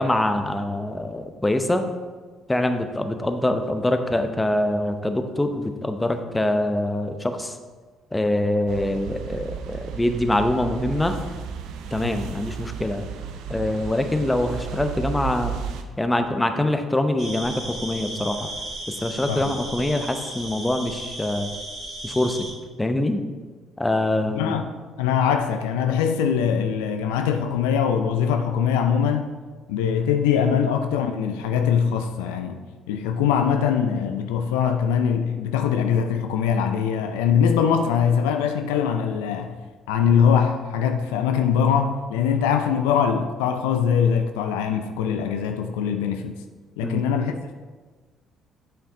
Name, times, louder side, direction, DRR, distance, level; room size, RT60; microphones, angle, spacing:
voice 1, 0.0-1.8 2.5-7.6 8.1-11.2 11.9-13.1 13.5-15.6 16.0-18.5 18.9-21.5 22.0-22.5 22.8-23.2 23.8-24.6 46.8-47.0, left 1 dB, 15° left, 0.8 m, -24 dB
sound 1, 8.7-15.8, right 7 dB, 70° right, 0.5 m, -34 dB
sound 2, 17.2-22.5, right 1 dB, 45° right, 2.3 m, -35 dB
voice 2, 24.4-24.7 25.0-29.3 29.7-39.6 39.9-46.4 46.8-47.5, left 7 dB, 80° left, 0.4 m, -22 dB
7.1 x 5.6 x 3.7 m
hypercardioid pair, 55°, 0 cm